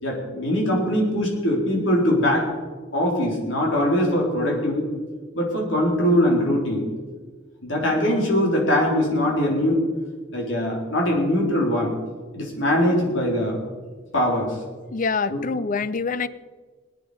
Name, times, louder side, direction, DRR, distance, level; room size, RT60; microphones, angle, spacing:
voice 1, 0.0-2.5 2.9-4.8 5.3-6.9 7.6-9.8 10.3-11.9 12.3-13.6 14.1-14.6 15.3-15.4, left 1 dB, 80° left, -1 dB, 3.9 m, -22 dB
voice 2, 14.9-16.3, left 4 dB, 45° left, 16 dB, 0.5 m, -25 dB
21.5 x 9.1 x 5.0 m, 1.4 s
head